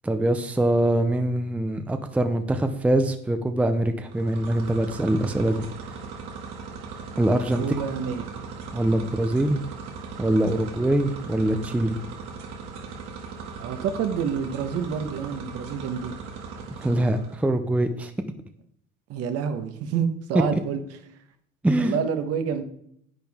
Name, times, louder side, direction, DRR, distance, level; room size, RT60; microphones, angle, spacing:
voice 1, 0.0-5.6 7.2-7.6 8.7-9.6 10.2-12.0 16.8-18.1 21.6-21.9, right 1 dB, 5° right, 8 dB, 0.6 m, -23 dB
sound 1, 4.0-17.4, right 5 dB, 75° right, 2.0 m, -38 dB
voice 2, 7.6-8.2 13.6-16.1 19.1-20.8 21.8-22.6, right 7 dB, 55° right, 8 dB, 1.2 m, -28 dB
10.5 x 9.0 x 3.6 m, 0.70 s
cardioid pair, 125°, 29 cm